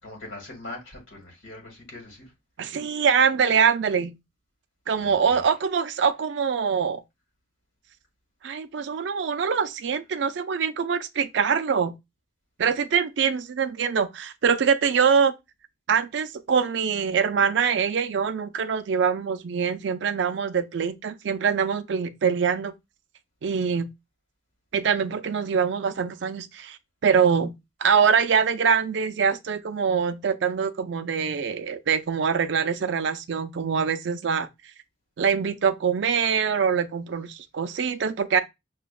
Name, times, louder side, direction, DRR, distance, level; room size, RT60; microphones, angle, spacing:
voice 1, 0.0-2.3 5.0-5.4, left 2 dB, 80° left, 1.8 m, -42 dB
voice 2, 2.6-4.1 4.9-7.0 8.4-11.9 12.6-15.3 15.9-22.7 23.4-23.9 24.7-26.8 27.0-27.5 27.8-34.5 35.2-38.4, right 6 dB, 65° right, 0.4 m, -24 dB
5.8 x 2.2 x 2.2 m
head